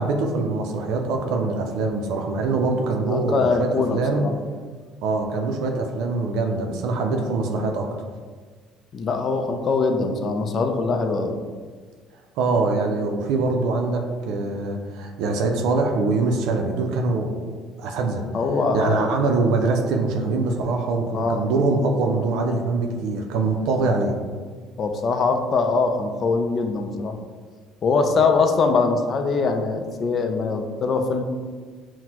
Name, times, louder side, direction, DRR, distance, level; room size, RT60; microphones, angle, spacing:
voice 1, 0.0-4.2 5.0-7.9 12.4-17.4 17.8-18.2 18.7-24.1, right 3 dB, 75° right, 2 dB, 0.4 m, -23 dB
voice 2, 3.1-4.3 8.9-11.3 18.3-19.1 21.1-21.4 24.8-27.2 27.8-31.2, left 4 dB, 40° left, 6 dB, 0.4 m, -22 dB
5.8 x 2.1 x 2.9 m, 1.5 s
cardioid pair, 115°, 0 cm